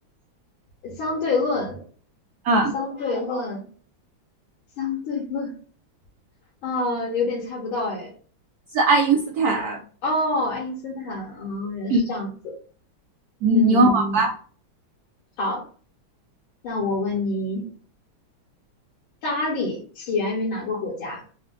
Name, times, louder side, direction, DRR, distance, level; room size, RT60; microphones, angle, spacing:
voice 1, 0.8-1.9 2.7-3.7 4.8-5.5 6.6-8.1 10.0-12.6 13.4-14.1 15.4-15.7 16.6-17.7 19.2-21.2, left 2 dB, 80° left, -4 dB, 1.8 m, -27 dB
voice 2, 8.7-9.8 11.9-12.0 13.4-14.3, right 2 dB, 85° right, 3 dB, 0.8 m, -19 dB
4.3 x 2.1 x 2.4 m, 0.41 s
omnidirectional pair, 2.2 m